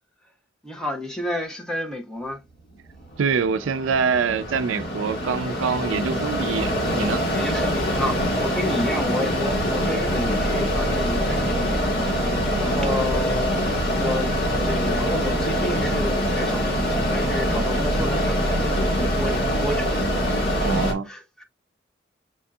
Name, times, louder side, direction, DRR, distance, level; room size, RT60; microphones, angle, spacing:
voice 1, 0.6-2.4 7.3-13.6 14.0-14.3 14.6-21.4, left 1 dB, 5° left, 0.7 m, -31 dB
Mechanisms, 2.9-20.9, equal, 50° left, 1.6 m, -24 dB
voice 2, 3.2-7.2 12.5-12.7 20.5-21.1, right 5 dB, 85° right, 0.4 m, -25 dB
7.4 x 2.7 x 2.3 m
head